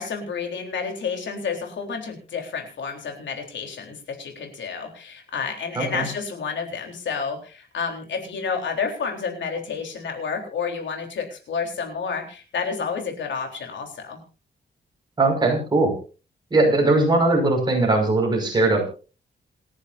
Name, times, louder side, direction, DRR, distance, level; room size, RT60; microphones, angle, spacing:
voice 1, 0.0-14.2, left 5 dB, 90° left, 3 dB, 3.8 m, -30 dB
voice 2, 5.8-6.1 15.2-15.9 16.5-18.9, right 2 dB, 25° right, 1 dB, 5.8 m, -20 dB
28.0 x 10.5 x 2.7 m, 0.35 s
wide cardioid pair, 175°, 19 cm